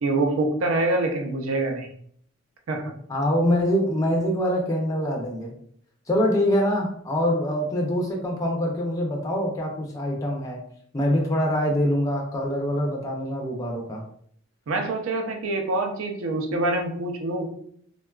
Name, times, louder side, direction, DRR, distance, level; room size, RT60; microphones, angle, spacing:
voice 1, 0.0-1.9 2.7-2.9 14.7-17.5, right 2 dB, 65° right, 3 dB, 0.4 m, -25 dB
voice 2, 3.1-5.6 6.1-10.6 10.9-14.0, equal, 15° left, -1 dB, 0.4 m, -24 dB
3.6 x 2.2 x 2.3 m, 0.64 s
head